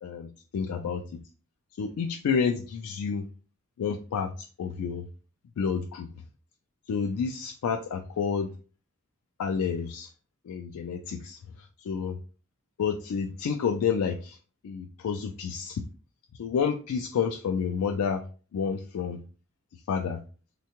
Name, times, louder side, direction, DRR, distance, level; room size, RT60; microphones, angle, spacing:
voice 1, 0.0-1.0 1.8-3.2 3.8-4.3 4.6-5.0 5.6-6.1 6.9-8.5 9.4-10.1 10.5-12.2 12.8-14.4 14.6-15.8 16.4-18.2 18.5-19.2 19.9-20.2, left 6 dB, 85° left, 5 dB, 0.3 m, -29 dB
3.5 x 2.2 x 2.8 m, 0.37 s
head